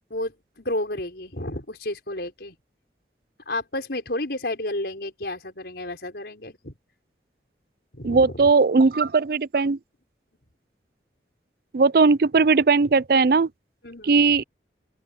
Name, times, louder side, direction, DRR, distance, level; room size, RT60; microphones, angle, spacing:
voice 1, 0.1-2.5 3.5-6.7 7.9-8.5 13.8-14.2, left 1 dB, 65° left, 4.9 m, -31 dB
voice 2, 8.0-9.8 11.7-13.5 14.0-14.4, right 4 dB, 55° right, 0.5 m, -18 dB
open air
head